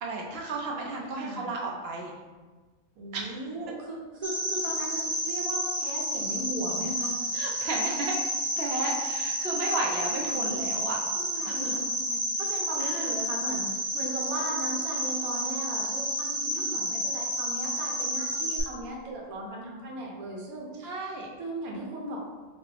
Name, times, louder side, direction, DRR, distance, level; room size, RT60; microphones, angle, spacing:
voice 1, 0.0-2.1 3.1-3.4 7.3-11.0 11.5-11.8 12.8-13.1 16.4-16.8 20.8-21.3, right 2 dB, 65° right, -1 dB, 0.6 m, -34 dB
voice 2, 1.0-1.5 2.9-7.3 9.7-10.6 11.1-20.9 21.4-22.2, right 1 dB, 85° right, -2 dB, 1.3 m, -37 dB
Cricket, 4.2-18.6, equal, 15° right, 0.8 m, -30 dB
3.3 x 2.9 x 3.3 m, 1.3 s
omnidirectional pair, 1.5 m